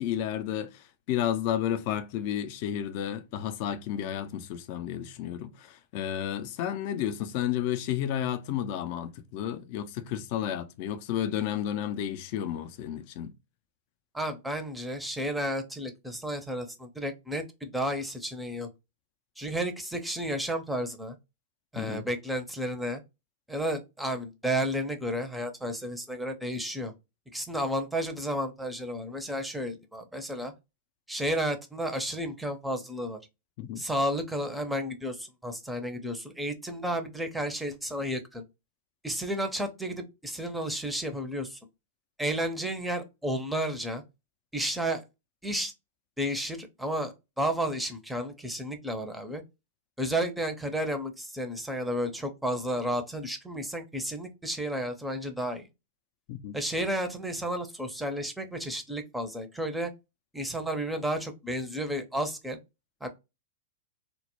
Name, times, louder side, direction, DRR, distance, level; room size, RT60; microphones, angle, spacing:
voice 1, 0.0-13.3 21.8-22.1 33.6-33.9 56.3-56.6, left 10 dB, 50° left, 0.4 m, -32 dB
voice 2, 14.1-18.7 19.4-21.2 21.7-23.0 23.5-26.9 27.3-30.5 31.1-33.2 33.8-38.4 39.0-41.6 42.2-44.0 44.5-45.0 45.4-45.7 46.2-49.4 50.0-55.7 56.5-59.9 60.3-62.6 63.0-63.1, equal, 5° right, 0.5 m, -32 dB
2.1 x 2.0 x 2.9 m
hypercardioid pair, 110°, 0 cm